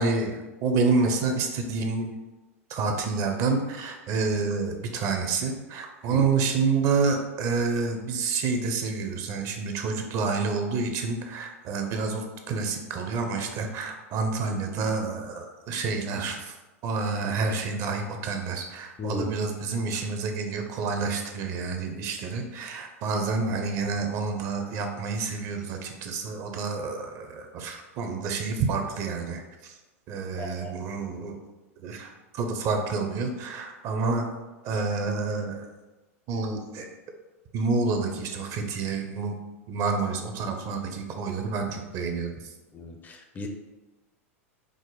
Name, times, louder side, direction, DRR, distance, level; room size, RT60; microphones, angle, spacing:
voice 1, 0.0-2.1 2.7-16.5 16.8-29.7 30.1-31.4 31.8-34.2 34.6-35.7 36.3-36.9 37.5-39.3 39.7-42.3, right 4 dB, 45° right, 4 dB, 0.7 m, -28 dB
voice 2, 30.1-30.7 42.7-43.5, left 2 dB, 20° left, 4 dB, 0.5 m, -36 dB
4.9 x 2.1 x 3.8 m, 1.1 s
hypercardioid pair, 100°, 8 cm